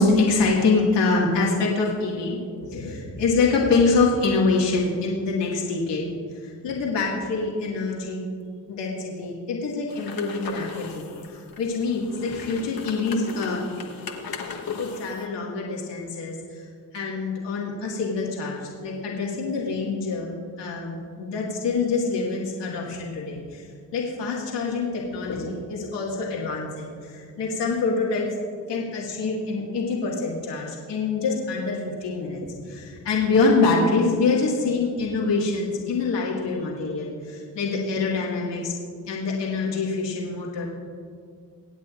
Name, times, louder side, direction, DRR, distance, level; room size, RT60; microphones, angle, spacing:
voice 1, 0.0-8.3 8.7-13.6 14.8-16.7 16.9-23.7 23.9-28.3 28.6-38.7 39.1-40.7, left 3 dB, 75° left, -4 dB, 2.0 m, -25 dB
Coffee maker machine, 9.9-15.3, left 5 dB, 55° left, 1.4 m, -37 dB
24.0 x 8.5 x 2.5 m, 2.2 s
supercardioid pair, 55°, 42 cm